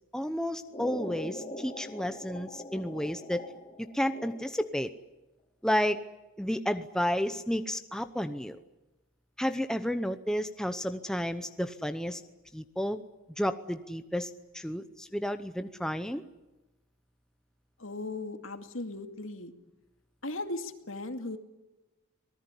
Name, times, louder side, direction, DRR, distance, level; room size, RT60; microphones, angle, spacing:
voice 1, 0.1-3.4 3.8-4.9 5.6-6.0 6.4-8.6 9.4-12.2 12.5-13.0 13.4-16.2, equal, 5° left, 9 dB, 0.8 m, -31 dB
sound 1, 0.7-4.8, left 1 dB, 25° left, 3.7 m, -42 dB
voice 2, 17.8-19.5 20.2-21.4, left 2 dB, 70° left, 7 dB, 2.4 m, -37 dB
25.0 x 19.5 x 9.9 m, 1.1 s
head